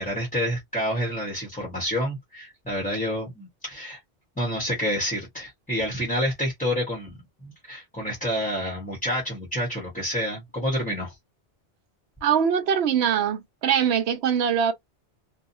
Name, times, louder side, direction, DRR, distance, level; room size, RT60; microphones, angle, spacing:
voice 1, 0.0-4.0 4.4-11.1, equal, 10° left, 1.0 m, -28 dB
voice 2, 12.2-14.7, right 8 dB, 75° right, 0.9 m, -22 dB
2.7 x 2.4 x 2.6 m
omnidirectional pair, 1.2 m